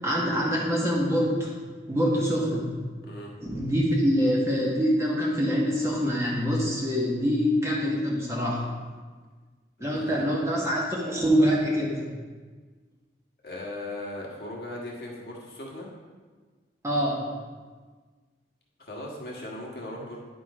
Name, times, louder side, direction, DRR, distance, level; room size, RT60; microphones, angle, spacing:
voice 1, 0.0-1.5 1.9-2.7 3.4-8.6 9.8-12.0 16.8-17.3, equal, 15° right, -4 dB, 1.4 m, -25 dB
voice 2, 9.9-10.3 13.4-15.9 18.8-20.2, left 1 dB, 60° left, -3 dB, 1.5 m, -38 dB
10.5 x 4.0 x 4.9 m, 1.4 s
head